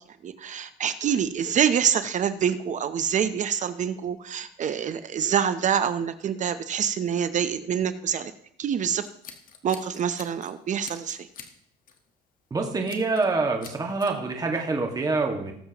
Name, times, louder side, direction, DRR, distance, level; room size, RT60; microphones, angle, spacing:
voice 1, 0.2-8.3 8.6-9.1 9.6-11.2, right 8 dB, 45° right, 11 dB, 0.8 m, -26 dB
Scissors, 9.0-10.5 10.8-11.5 11.9-12.1 12.9-13.3 13.6-14.1, left 7 dB, 55° left, 1.5 m, -45 dB
voice 2, 12.5-15.5, right 3 dB, 20° right, 2 dB, 1.9 m, -26 dB
19.5 x 7.3 x 3.0 m, 0.69 s
cardioid pair, 110°, 17 cm